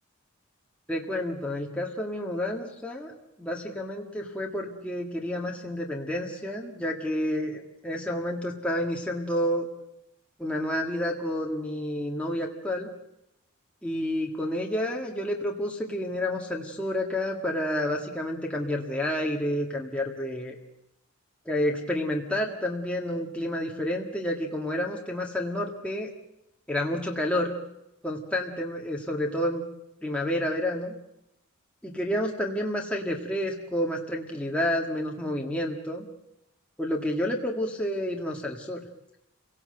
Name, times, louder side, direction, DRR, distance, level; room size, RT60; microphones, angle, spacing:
voice 1, 0.9-3.1 3.4-9.7 10.4-12.9 13.8-20.6 21.4-26.1 26.7-27.6 28.0-29.6 30.0-30.9 31.8-36.1 36.8-38.8, left 1 dB, 5° left, -1 dB, 1.9 m, -29 dB
28.5 x 18.0 x 7.9 m, 0.85 s
head